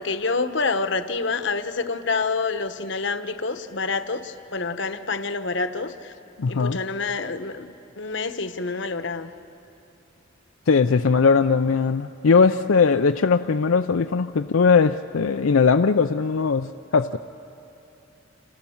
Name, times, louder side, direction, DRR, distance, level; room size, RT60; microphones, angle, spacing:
voice 1, 0.0-6.1 6.5-9.3, left 4 dB, 60° left, 10 dB, 1.1 m, -27 dB
voice 2, 6.4-6.8 10.7-17.2, left 5 dB, 85° left, 7 dB, 0.5 m, -19 dB
30.0 x 27.5 x 7.2 m, 2.8 s
head